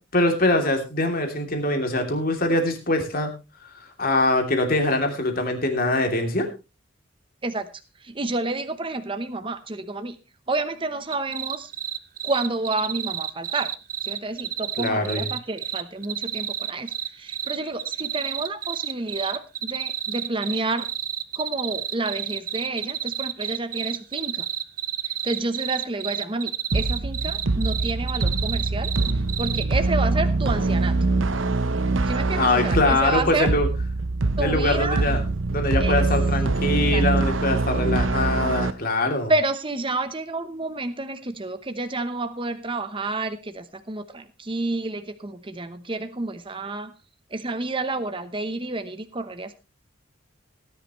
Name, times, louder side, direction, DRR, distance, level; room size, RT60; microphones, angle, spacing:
voice 1, 0.1-3.3 3.7-6.5 14.8-15.3 32.4-33.7 34.4-35.2 35.5-39.3, left 2 dB, 50° left, 4 dB, 3.0 m, -23 dB
voice 2, 8.0-10.2 10.5-11.7 12.2-13.7 14.0-20.9 21.3-24.5 25.2-28.9 29.4-30.9 32.1-33.5 34.4-35.0 35.8-36.1 36.9-37.0 39.3-46.9 47.3-49.5, right 2 dB, 25° right, 9 dB, 1.0 m, -29 dB
sound 1, 11.1-29.6, right 10 dB, 45° right, 0.7 m, -30 dB
sound 2, 26.7-38.7, right 3 dB, 80° right, 0.9 m, -24 dB
17.5 x 11.0 x 3.2 m, 0.28 s
head